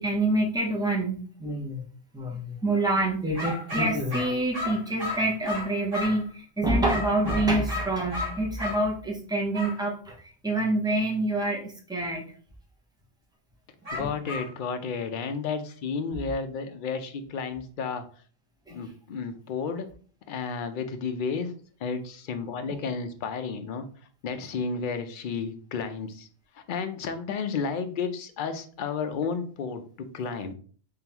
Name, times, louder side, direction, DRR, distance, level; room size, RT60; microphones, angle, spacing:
voice 1, 0.0-1.8 2.1-10.1 10.4-12.3 14.0-14.1 18.7-18.8 22.7-22.8, right 1 dB, 5° right, -1 dB, 0.8 m, -27 dB
sound 1, 3.4-6.3 6.9-8.8 9.5-9.8 13.9-14.5, left 3 dB, 35° right, 1.5 m, -34 dB
voice 2, 13.9-18.1 18.7-19.9 20.3-21.5 21.8-23.9 24.2-26.3 26.5-30.5, left 5 dB, 55° left, 8 dB, 0.6 m, -32 dB
3.7 x 3.4 x 2.9 m, 0.43 s
omnidirectional pair, 1.1 m